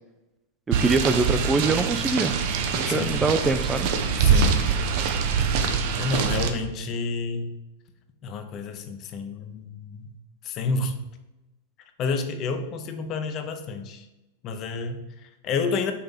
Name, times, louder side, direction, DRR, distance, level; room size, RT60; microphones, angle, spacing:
voice 1, 0.7-2.4 2.7-3.9, right 3 dB, 15° right, 9 dB, 0.4 m, -24 dB
sound 1, 0.7-6.5, right 6 dB, 55° right, 0.8 m, -24 dB
voice 2, 2.9-3.2 4.2-4.6 5.7-7.6 8.2-10.1 10.4-11.0 12.0-14.1 14.4-15.9, left 4 dB, 40° left, 7 dB, 0.7 m, -30 dB
5.6 x 3.4 x 5.6 m, 1.0 s
hypercardioid pair, 105°, 0 cm